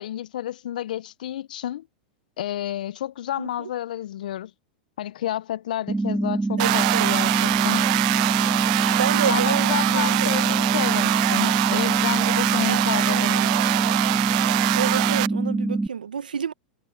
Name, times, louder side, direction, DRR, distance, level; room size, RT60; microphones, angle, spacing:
voice 1, 0.0-1.9 2.4-4.5 5.0-7.9 8.9-9.0 9.3-13.5, left 12 dB, 70° left, 0.8 m, -30 dB
voice 2, 3.4-3.7 6.6-7.1 9.0-10.4 12.7-13.5 14.7-16.5, right 7 dB, 85° right, 1.3 m, -30 dB
sound 1, 5.9-15.9, right 2 dB, 10° right, 1.2 m, -25 dB
sound 2, 6.6-15.3, right 23 dB, 55° right, 0.6 m, -23 dB
hypercardioid pair, 100°, 5 cm